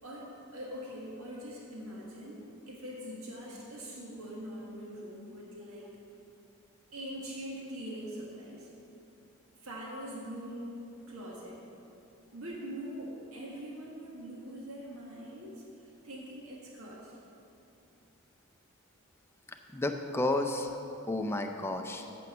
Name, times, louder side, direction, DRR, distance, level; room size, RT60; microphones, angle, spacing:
voice 1, 0.0-5.9 6.9-8.7 9.6-10.7 11.1-11.6 12.3-17.1, equal, 75° right, -3 dB, 1.7 m, -43 dB
voice 2, 19.7-20.7 21.1-22.1, left 2 dB, 10° left, 4 dB, 0.5 m, -31 dB
9.0 x 6.2 x 7.1 m, 2.8 s
head